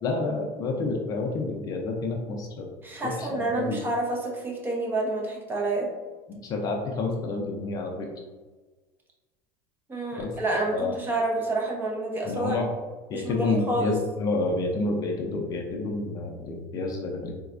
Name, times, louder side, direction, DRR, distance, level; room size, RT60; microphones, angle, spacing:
voice 1, 0.0-2.7 3.0-3.8 6.3-8.1 10.2-10.3 10.7-10.9 12.2-12.7 13.1-17.3, left 3 dB, 35° left, 1 dB, 0.5 m, -29 dB
voice 2, 2.8-5.9 9.9-12.6 13.1-13.9, right 2 dB, 20° right, -2 dB, 0.8 m, -28 dB
4.0 x 2.2 x 2.5 m, 1.3 s
supercardioid pair, 125°, 10 cm